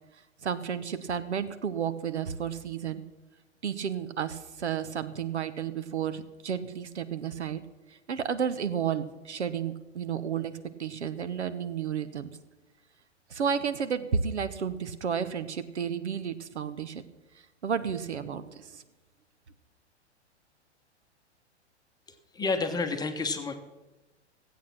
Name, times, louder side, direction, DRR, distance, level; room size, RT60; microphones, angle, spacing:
voice 1, 0.4-3.0 3.6-7.6 8.1-12.3 13.3-17.0 17.6-18.8, right 7 dB, 75° right, 13 dB, 1.0 m, -32 dB
voice 2, 22.1-23.5, left 4 dB, 10° left, 5 dB, 1.1 m, -30 dB
15.5 x 8.4 x 6.0 m, 1.1 s
figure-of-eight pair, 110°, 34 cm